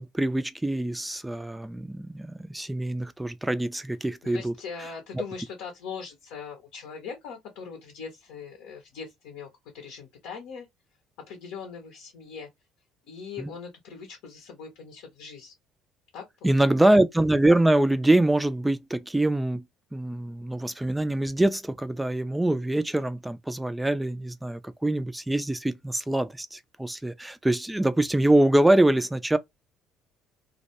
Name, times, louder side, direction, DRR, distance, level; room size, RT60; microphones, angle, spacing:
voice 1, 0.0-4.5 13.4-13.5 16.4-19.6 19.9-29.4, right 1 dB, 10° right, 0.4 m, -24 dB
voice 2, 4.2-10.7 11.2-12.5 13.1-15.5 16.1-16.7, left 6 dB, 70° left, 0.7 m, -41 dB
2.2 x 2.1 x 2.8 m
hypercardioid pair, 55°, 0 cm